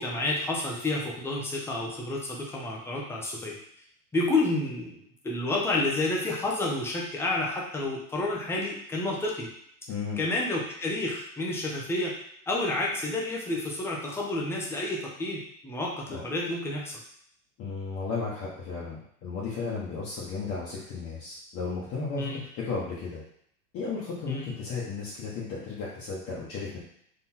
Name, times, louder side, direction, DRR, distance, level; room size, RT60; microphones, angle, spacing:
voice 1, 0.0-3.6 4.1-9.5 10.2-12.1 12.5-17.0 22.2-22.4 24.3-24.5, left 2 dB, 5° left, -3 dB, 0.6 m, -30 dB
voice 2, 9.9-10.2 16.1-16.2 17.6-23.2 23.7-26.8, left 4 dB, 30° left, -7 dB, 1.1 m, -34 dB
4.0 x 3.0 x 4.3 m, 0.68 s
hypercardioid pair, 130°, 46 cm